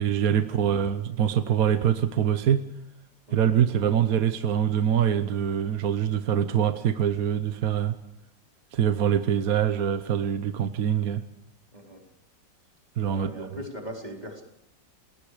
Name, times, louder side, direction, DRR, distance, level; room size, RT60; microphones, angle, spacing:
voice 1, 0.0-2.6 3.3-8.0 8.7-11.2 13.0-13.6, right 9 dB, 55° right, 9 dB, 1.3 m, -24 dB
voice 2, 11.7-12.0 13.0-14.4, equal, 20° right, -1 dB, 4.8 m, -40 dB
29.0 x 21.5 x 5.0 m, 0.81 s
omnidirectional pair, 2.0 m